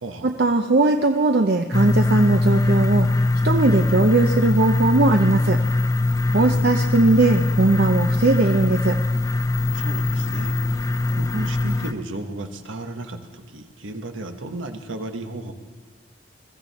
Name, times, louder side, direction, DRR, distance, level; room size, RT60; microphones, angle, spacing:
voice 1, 0.2-3.1 3.4-5.6 6.3-8.9, right 2 dB, 55° right, 4 dB, 0.6 m, -19 dB
sound 1, 1.7-11.9, left 2 dB, 15° left, 0.4 m, -21 dB
voice 2, 6.3-6.7 9.7-10.8 11.1-15.5, right 2 dB, 90° right, 6 dB, 1.3 m, -34 dB
22.0 x 14.0 x 4.2 m, 1.4 s
head